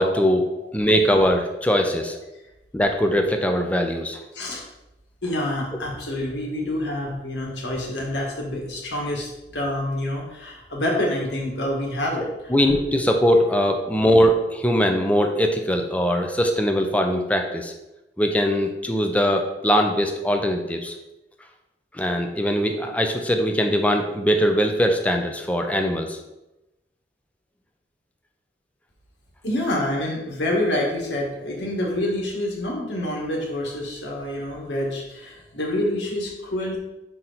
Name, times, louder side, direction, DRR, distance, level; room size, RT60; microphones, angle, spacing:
voice 1, 0.0-0.4 0.7-2.2 2.7-4.2 12.5-17.7 18.2-20.9 21.9-26.2, equal, 10° left, 4 dB, 0.6 m, -21 dB
voice 2, 5.2-12.6 29.4-36.8, left 1 dB, 90° left, -1 dB, 1.6 m, -27 dB
6.0 x 4.4 x 4.0 m, 0.94 s
head